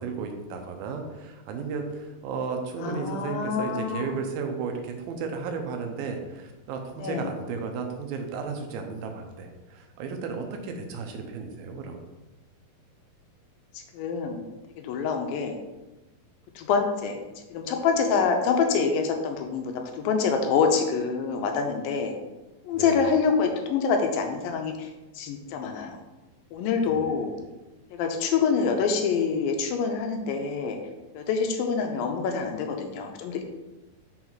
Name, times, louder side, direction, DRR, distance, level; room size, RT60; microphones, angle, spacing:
voice 1, 0.0-12.0 22.7-23.1 26.9-27.1, right 5 dB, 85° right, 4 dB, 2.6 m, -34 dB
voice 2, 2.8-4.1 7.0-7.3 13.9-14.4 14.8-15.6 16.6-17.2 17.5-22.1 22.7-24.7 25.2-26.0 26.5-27.3 27.9-30.8 31.1-33.4, left 5 dB, 80° left, 4 dB, 2.4 m, -26 dB
6.2 x 4.0 x 4.5 m, 1.1 s
omnidirectional pair, 4.2 m